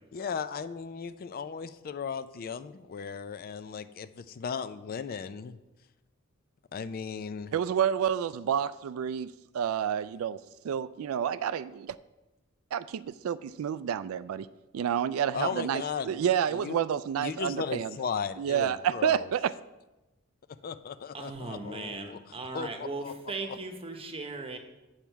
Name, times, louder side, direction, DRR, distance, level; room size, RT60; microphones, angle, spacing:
voice 1, 0.1-5.6 6.7-7.5 15.3-16.2 16.5-19.3 20.6-23.1 23.4-23.6, left 6 dB, 45° left, 12 dB, 0.4 m, -36 dB
voice 2, 7.5-10.4 10.6-11.9 12.7-14.5 14.7-17.9 18.4-19.5, right 8 dB, 85° right, 16 dB, 0.3 m, -29 dB
voice 3, 21.1-24.6, right 3 dB, 30° right, 5 dB, 1.0 m, -38 dB
8.8 x 7.3 x 4.6 m, 1.0 s
head